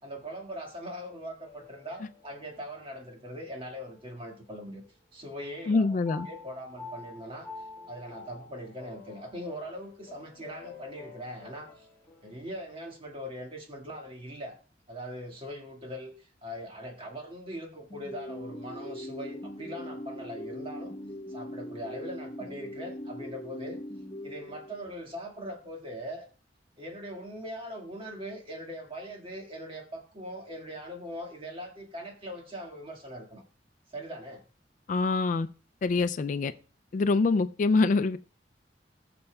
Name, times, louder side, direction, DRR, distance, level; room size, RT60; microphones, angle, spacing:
voice 1, 0.0-4.8 5.1-6.0 6.3-7.5 7.9-11.9 12.2-14.6 14.9-20.9 21.3-23.8 24.2-26.3 26.8-33.4 33.9-34.4, equal, 30° right, 1.9 m, -41 dB
sound 1, 1.4-5.0 5.3-12.6, left 4 dB, 10° left, 4.5 m, -49 dB
voice 2, 5.7-6.3 34.9-35.5 35.8-36.5 36.9-38.2, left 3 dB, 45° left, 0.3 m, -25 dB
sound 2, 17.9-25.1, equal, 30° left, 0.8 m, -41 dB
19.5 x 6.8 x 2.3 m
head